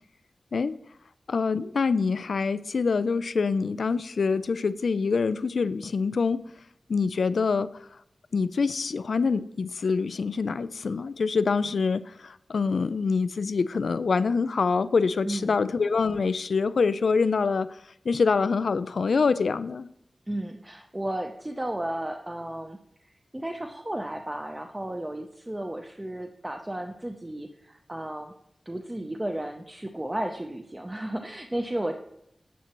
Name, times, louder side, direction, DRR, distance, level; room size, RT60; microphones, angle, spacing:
voice 1, 1.3-6.4 6.9-7.9 8.3-17.8 18.1-19.9, left 4 dB, 90° left, 15 dB, 0.3 m, -25 dB
voice 2, 15.2-15.6 20.3-28.3 28.7-32.0, right 1 dB, 20° right, 3 dB, 0.6 m, -34 dB
9.3 x 7.1 x 2.9 m, 0.76 s
wide cardioid pair, 95°, 0 cm